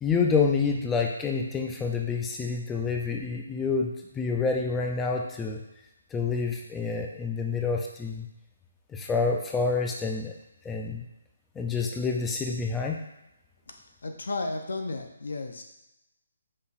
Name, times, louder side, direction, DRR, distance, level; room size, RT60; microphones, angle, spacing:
voice 1, 0.0-5.6 6.1-8.3 8.9-10.3 10.6-11.0 11.6-13.0, left 4 dB, 10° left, 1 dB, 0.3 m, -28 dB
voice 2, 14.0-15.6, left 3 dB, 75° left, 5 dB, 0.7 m, -33 dB
5.2 x 2.4 x 4.1 m, 0.90 s
hypercardioid pair, 165°, 0 cm